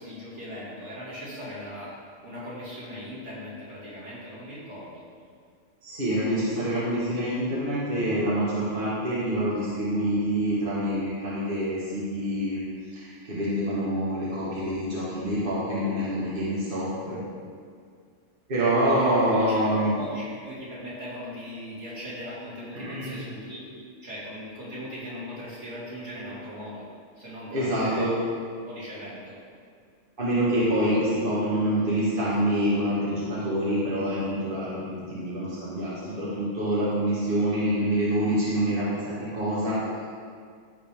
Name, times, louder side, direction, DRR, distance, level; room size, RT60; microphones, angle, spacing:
voice 1, 0.0-5.0 18.8-19.7 20.0-26.8 27.2-28.1 28.7-29.4 30.9-31.0, equal, 65° right, -9 dB, 2.9 m, -39 dB
voice 2, 5.8-12.6 12.9-17.2 18.5-19.9 22.7-23.2 27.5-28.1 30.2-39.8, equal, 45° right, -9 dB, 1.8 m, -26 dB
14.5 x 5.2 x 3.6 m, 2.1 s
omnidirectional pair, 1.3 m